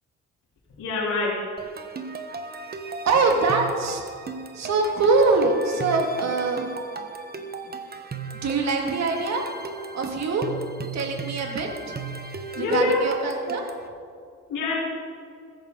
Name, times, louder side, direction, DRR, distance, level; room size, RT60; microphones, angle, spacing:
voice 1, 0.8-1.4 12.5-13.0 14.5-14.8, left 3 dB, 80° left, -5 dB, 3.8 m, -25 dB
sound 1, 1.6-13.9, right 4 dB, 30° right, 1.2 m, -36 dB
voice 2, 3.0-4.0 4.5-6.7 8.4-9.4 9.9-10.5 10.9-12.0 12.6-13.6, right 3 dB, 60° right, 1 dB, 2.6 m, -23 dB
15.5 x 14.5 x 4.0 m, 2.3 s
cardioid pair, 90°, 30 cm